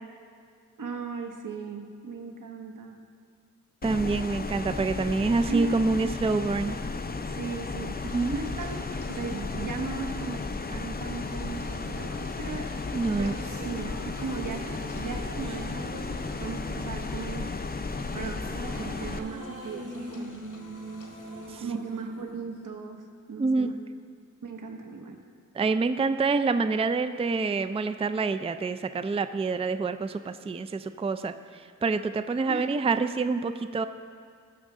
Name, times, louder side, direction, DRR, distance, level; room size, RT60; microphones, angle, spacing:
voice 1, 0.8-3.0 5.5-5.8 7.3-8.0 8.3-12.7 13.2-16.1 16.3-17.5 18.1-20.3 21.6-23.7 24.4-25.2 32.5-32.7, right 4 dB, 85° right, 3 dB, 1.2 m, -37 dB
sound 1, 3.8-19.2, left 3 dB, 30° left, 0.5 m, -34 dB
voice 2, 3.8-6.8 8.0-8.4 12.9-13.4 21.5-21.6 23.4-23.7 25.5-31.3 31.8-33.8, right 4 dB, 20° right, 10 dB, 0.3 m, -27 dB
sound 2, 8.0-21.7, left 3 dB, 75° left, 1.4 m, -51 dB
sound 3, 12.9-23.3, right 1 dB, 60° right, 2.6 m, -43 dB
19.5 x 6.5 x 3.7 m, 2.2 s
wide cardioid pair, 100°, 31 cm